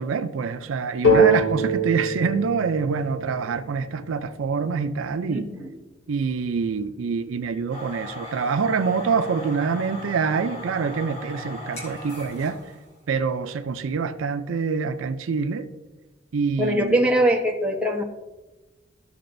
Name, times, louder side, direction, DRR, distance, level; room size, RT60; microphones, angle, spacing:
voice 1, 0.0-5.5 6.1-12.6 13.1-15.7 16.3-17.0, right 5 dB, 75° right, 0.4 m, -25 dB
sound 1, 1.0-4.7, right 1 dB, 60° left, 2.2 m, -23 dB
voice 2, 5.2-5.7 16.6-18.0, right 1 dB, 5° right, 1.0 m, -22 dB
sound 2, 7.7-12.9, left 1 dB, 35° left, 2.2 m, -38 dB
14.0 x 6.6 x 2.6 m
head